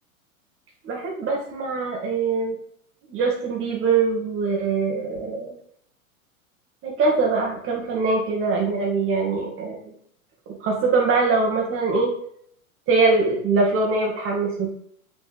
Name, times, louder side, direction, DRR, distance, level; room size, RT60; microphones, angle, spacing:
voice 1, 0.8-2.6 3.1-5.5 6.8-9.8 10.6-12.1 12.9-14.7, right 4 dB, 30° right, -1 dB, 2.1 m, -22 dB
7.7 x 6.1 x 3.4 m, 0.68 s
figure-of-eight pair, 100°, 42 cm